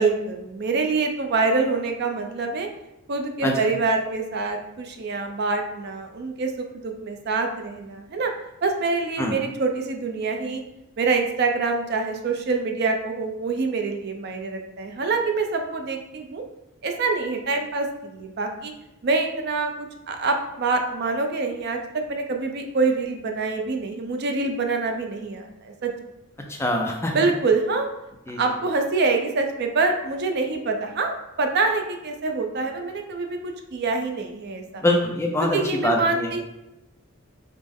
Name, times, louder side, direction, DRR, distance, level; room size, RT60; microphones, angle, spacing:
voice 1, 0.0-2.7 3.1-8.3 8.6-10.6 11.0-16.4 16.8-18.7 19.0-25.9 27.1-27.9 28.4-34.8 35.5-36.4, right 3 dB, 50° right, 4 dB, 0.5 m, -25 dB
voice 2, 26.5-27.1 28.3-28.4 34.8-36.3, left 1 dB, 10° left, 1 dB, 0.4 m, -23 dB
5.1 x 2.0 x 3.5 m, 0.92 s
head